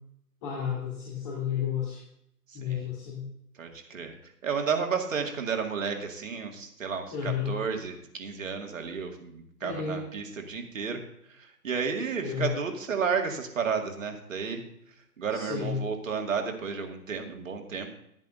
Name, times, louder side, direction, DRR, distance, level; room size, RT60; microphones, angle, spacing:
voice 1, 0.4-2.0 2.5-3.2 7.1-7.5 9.6-10.0 12.2-12.5 15.3-15.8, left 7 dB, 25° left, -5 dB, 2.6 m, -32 dB
voice 2, 2.5-2.9 3.6-11.0 11.3-14.6 15.2-17.9, right 6 dB, 50° right, 4 dB, 2.1 m, -32 dB
15.0 x 10.5 x 2.6 m, 0.74 s
figure-of-eight pair, 135°, 48 cm